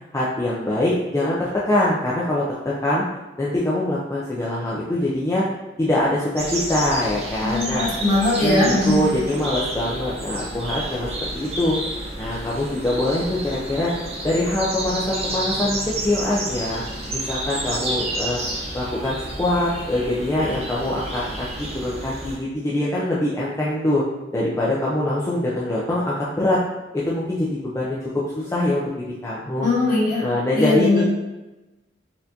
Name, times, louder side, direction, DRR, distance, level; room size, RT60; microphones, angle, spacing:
voice 1, 0.1-3.0 3.4-5.4 5.8-7.9 8.4-11.8 12.2-13.9 14.2-16.8 17.1-18.4 18.7-21.5 21.8-24.0 24.3-26.6 26.9-28.0 28.4-29.7 30.2-31.0, left 1 dB, 15° left, -7 dB, 0.4 m, -23 dB
sound 1, 6.3-22.4, right 1 dB, 35° right, 0.7 m, -30 dB
voice 2, 7.4-9.0 29.6-30.2 30.5-31.0, left 2 dB, 45° left, -8 dB, 1.5 m, -20 dB
4.2 x 2.5 x 2.7 m, 1.1 s
head